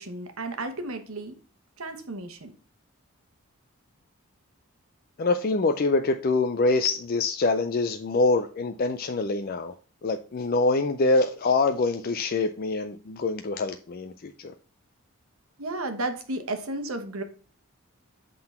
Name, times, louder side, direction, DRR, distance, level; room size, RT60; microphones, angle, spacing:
voice 1, 0.0-1.4 1.8-2.5 15.6-17.2, right 2 dB, 75° right, 1.1 m, -33 dB
voice 2, 5.2-9.7 10.0-14.5, left 3 dB, 45° left, 0.4 m, -25 dB
7.8 x 3.9 x 4.2 m
head